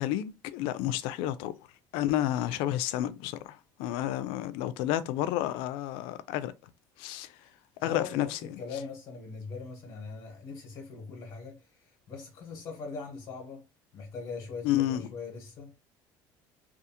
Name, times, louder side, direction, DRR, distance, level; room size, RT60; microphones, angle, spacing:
voice 1, 0.0-1.5 1.9-3.5 3.8-6.5 7.0-7.3 7.8-8.4 14.6-15.0, left 13 dB, 85° left, 0.3 m, -30 dB
voice 2, 7.8-13.6 13.9-15.9, left 4 dB, 50° left, 0.9 m, -41 dB
2.5 x 2.4 x 2.8 m
cardioid pair, 140°, 9 cm